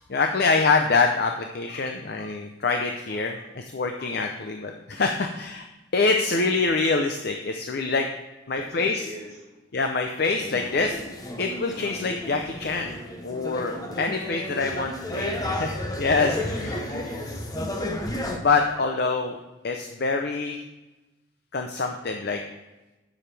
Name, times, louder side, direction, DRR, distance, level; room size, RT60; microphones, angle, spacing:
voice 1, 0.1-5.7 5.9-8.1 8.5-9.1 9.7-11.0 11.4-13.0 13.2-15.3 15.6-15.7 16.0-16.7 18.4-19.4 19.6-20.6 21.5-22.4, left 4 dB, 50° left, 4 dB, 0.6 m, -25 dB
voice 2, 8.5-9.5 15.1-16.1 16.5-17.5, equal, 35° left, -3 dB, 2.5 m, -41 dB
sound 1, 10.4-18.4, left 1 dB, 20° left, 0.8 m, -32 dB
10.0 x 7.2 x 3.3 m, 1.1 s
head